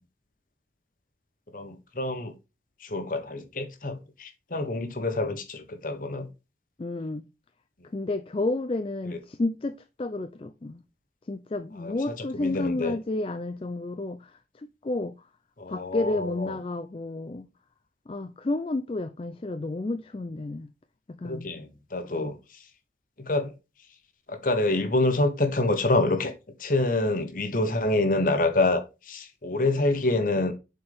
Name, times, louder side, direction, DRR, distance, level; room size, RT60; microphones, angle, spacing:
voice 1, 1.5-2.3 2.8-6.3 11.8-11.9 12.4-12.9 15.6-16.5 21.2-22.4 23.2-23.5 24.3-26.3 26.6-28.8 29.1-30.5, left 2 dB, 50° left, 1.2 m, -26 dB
voice 2, 6.8-7.2 7.9-10.8 11.3-15.2 15.7-17.5 18.1-20.7 21.1-21.5 22.0-22.3, left 2 dB, 30° left, 0.4 m, -31 dB
7.7 x 4.5 x 3.6 m
head